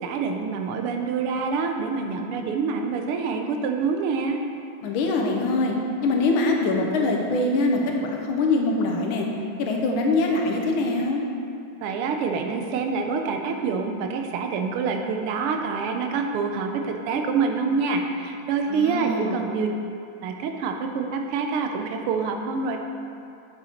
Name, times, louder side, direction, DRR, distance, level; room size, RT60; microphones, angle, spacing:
voice 1, 0.0-4.4 11.8-19.7 20.2-22.8, right 5 dB, 90° right, 4 dB, 1.6 m, -26 dB
voice 2, 4.8-5.7 6.0-7.8 8.3-9.3 9.6-11.2 18.7-19.4, left 2 dB, 70° left, 1 dB, 1.6 m, -23 dB
7.2 x 6.3 x 4.4 m, 2.6 s
omnidirectional pair, 2.4 m